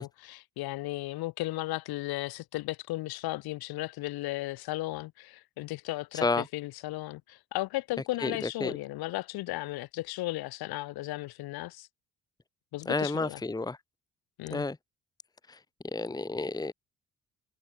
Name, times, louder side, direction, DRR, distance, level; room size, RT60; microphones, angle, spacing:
voice 1, 0.0-11.9 12.7-13.4 14.4-14.6, left 18 dB, 60° left, 3.0 m, -35 dB
voice 2, 12.9-13.8 14.5-14.8 15.9-16.7, left 3 dB, 10° left, 1.2 m, -30 dB
figure-of-eight pair, 45°, 41 cm